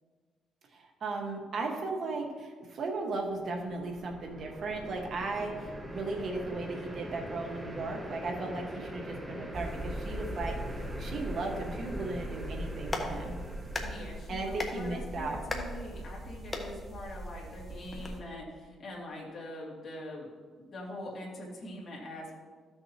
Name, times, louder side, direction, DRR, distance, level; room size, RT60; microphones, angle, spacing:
voice 1, 0.7-13.4 14.3-15.4, right 3 dB, 55° right, 1 dB, 1.6 m, -36 dB
sound 1, 3.3-14.7, equal, 10° right, 1.1 m, -43 dB
sound 2, 9.5-18.2, equal, 35° right, 1.9 m, -41 dB
Clapping, 12.6-18.1, left 2 dB, 25° left, 1.3 m, -41 dB
voice 2, 13.8-20.3 20.5-22.3, left 1 dB, 45° left, -4 dB, 2.5 m, -43 dB
13.5 x 6.5 x 3.0 m, 1.5 s
cardioid pair, 90°, 0 cm